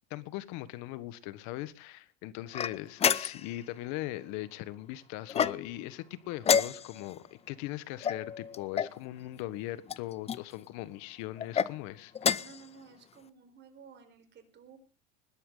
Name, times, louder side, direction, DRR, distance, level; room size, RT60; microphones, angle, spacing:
voice 1, 0.1-12.1, left 16 dB, 55° left, 1.5 m, -40 dB
sound 1, 2.5-3.6 5.3-5.9 6.4-7.1 8.0-9.0 9.9-10.4 11.4-11.7 12.2-12.6, left 7 dB, 20° left, 0.6 m, -29 dB
voice 2, 12.4-14.8, right 6 dB, 30° right, 4.5 m, -54 dB
20.5 x 12.0 x 4.0 m
supercardioid pair, 125°, 34 cm